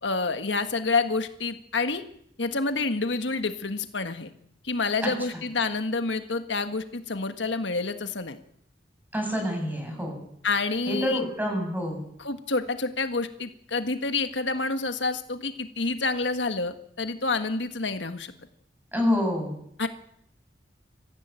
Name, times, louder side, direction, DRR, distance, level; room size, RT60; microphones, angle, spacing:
voice 1, 0.0-2.0 2.4-4.3 4.6-8.4 10.4-11.2 12.2-18.3 19.8-19.9, left 3 dB, 85° left, 8 dB, 1.6 m, -28 dB
voice 2, 9.1-10.2 10.9-12.0 18.9-19.5, left 1 dB, 10° right, 2 dB, 7.9 m, -27 dB
23.0 x 15.0 x 9.1 m, 0.72 s
head